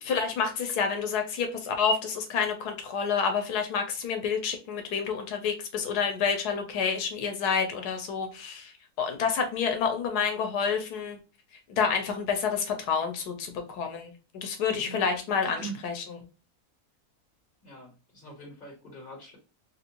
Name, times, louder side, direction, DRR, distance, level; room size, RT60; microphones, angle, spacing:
voice 1, 0.0-11.2 11.7-16.0, left 6 dB, 85° left, 5 dB, 1.2 m, -29 dB
voice 2, 15.4-15.8 17.6-19.4, right 3 dB, 35° left, -1 dB, 1.6 m, -43 dB
3.3 x 2.6 x 2.8 m, 0.33 s
omnidirectional pair, 1.6 m